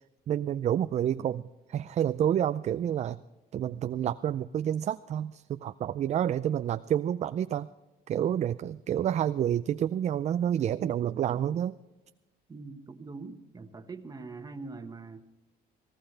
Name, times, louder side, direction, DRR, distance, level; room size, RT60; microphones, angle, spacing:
voice 1, 0.3-1.4 1.7-3.2 3.5-7.7 8.1-11.7, right 10 dB, 40° right, 12 dB, 0.4 m, -29 dB
voice 2, 12.5-15.2, right 3 dB, 20° right, 7 dB, 1.4 m, -43 dB
18.5 x 17.5 x 3.4 m, 1.1 s
cardioid pair, 110°, 17 cm